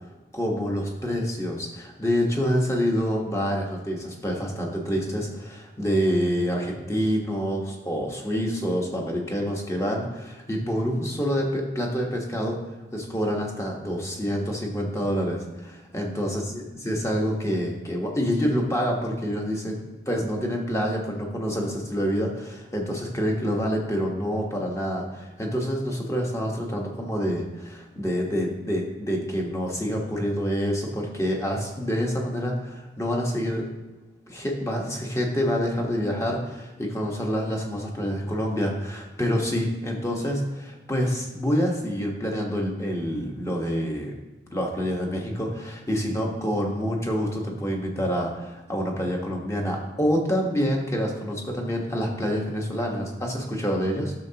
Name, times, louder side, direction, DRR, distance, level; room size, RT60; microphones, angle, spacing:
voice 1, 0.3-12.6 12.9-19.8 20.1-33.6 34.3-44.2 44.5-54.1, equal, 15° left, 0 dB, 1.2 m, -27 dB
12.0 x 6.6 x 2.9 m, 1.1 s
head